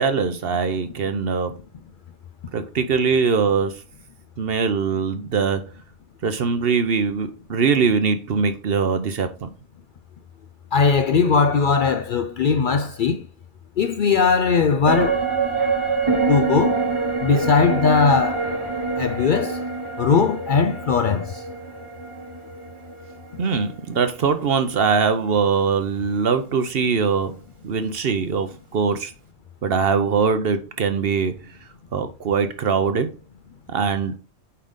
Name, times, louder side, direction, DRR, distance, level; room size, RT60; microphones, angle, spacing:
voice 1, 0.0-1.5 2.5-3.8 4.4-5.6 6.2-9.5 23.4-27.4 27.6-29.1 29.6-31.3 31.9-33.1 33.7-34.1, right 5 dB, 60° right, 0.9 m, -22 dB
voice 2, 10.7-13.2 13.8-15.3 16.3-16.8 17.2-18.5 19.0-19.6 20.0-21.4, left 5 dB, 60° left, 0.5 m, -19 dB
sound 1, 14.9-24.4 24.7-24.8, right 4 dB, 25° right, 1.0 m, -26 dB
8.6 x 3.9 x 3.7 m
omnidirectional pair, 1.2 m